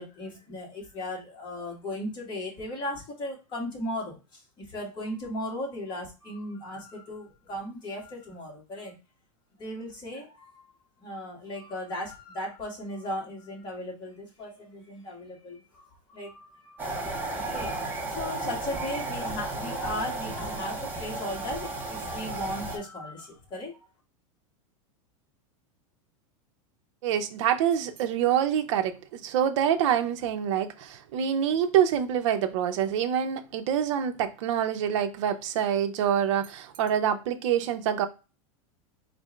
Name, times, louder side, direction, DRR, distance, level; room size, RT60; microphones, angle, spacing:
voice 1, 0.0-8.9 9.6-10.5 11.0-23.8, left 1 dB, 25° left, 1.6 m, -37 dB
sound 1, 16.8-22.8, right 2 dB, 10° right, 0.8 m, -34 dB
voice 2, 27.0-38.1, right 9 dB, 60° right, 0.6 m, -26 dB
4.4 x 2.6 x 3.1 m
supercardioid pair, 145°, 17 cm